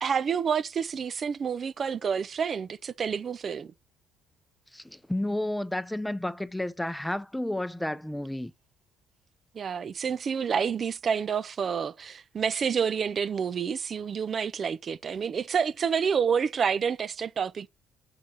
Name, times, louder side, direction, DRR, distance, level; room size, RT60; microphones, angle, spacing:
voice 1, 0.0-3.7 9.5-17.7, right 6 dB, 45° right, 0.4 m, -28 dB
voice 2, 4.7-8.5, left 1 dB, 5° left, 0.6 m, -31 dB
6.5 x 4.1 x 6.2 m
supercardioid pair, 60°, 0 cm